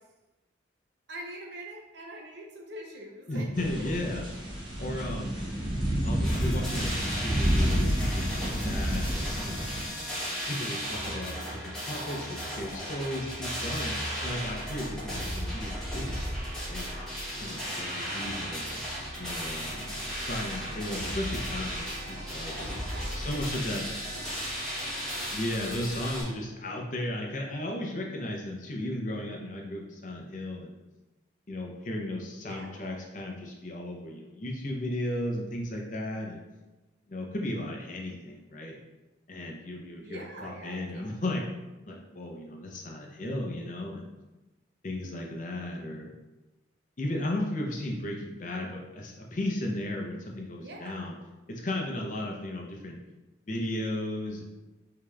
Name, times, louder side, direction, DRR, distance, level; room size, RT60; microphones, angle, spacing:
voice 1, 1.1-3.9 17.6-18.5 22.8-23.6 24.1-25.4 25.7-26.0 32.4-33.0 40.0-41.2 50.6-51.1, right 1 dB, 65° right, 0 dB, 0.6 m, -45 dB
voice 2, 3.3-4.2 4.8-5.3 6.0-9.7 10.5-13.9 14.2-16.3 16.7-16.9 17.4-18.8 19.2-22.5 23.1-23.9 25.3-30.7 31.5-36.4 37.1-38.8 39.3-41.4 41.9-44.1 44.8-46.1 47.0-51.1 51.6-53.0 53.5-54.4, left 1 dB, 40° left, 0 dB, 0.6 m, -35 dB
sound 1, 3.5-9.9, equal, 25° right, 0.9 m, -29 dB
sound 2, 6.2-26.2, equal, 5° left, 0.9 m, -35 dB
4.9 x 2.9 x 2.3 m, 1.1 s
head